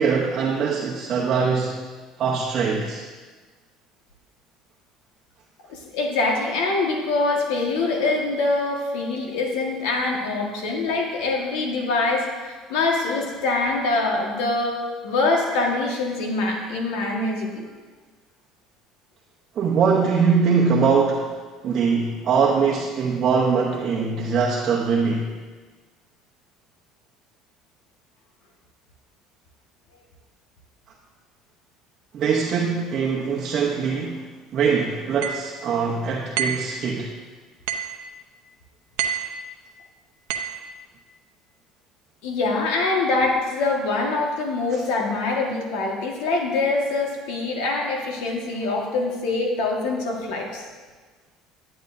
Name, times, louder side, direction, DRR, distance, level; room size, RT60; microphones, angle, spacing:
voice 1, 0.0-1.8 2.2-3.0 19.6-21.3 21.6-25.4 32.1-34.2 34.5-37.1, right 5 dB, 45° right, -3 dB, 0.9 m, -22 dB
voice 2, 5.7-17.7 42.2-50.6, left 3 dB, 85° left, 0 dB, 1.6 m, -24 dB
sound 1, 35.2-35.5 36.4-36.7 37.7-38.0 39.0-39.3 40.3-40.6, right 9 dB, 90° right, 0.7 m, -27 dB
10.5 x 8.7 x 2.7 m, 1.4 s
cardioid pair, 115°, 0 cm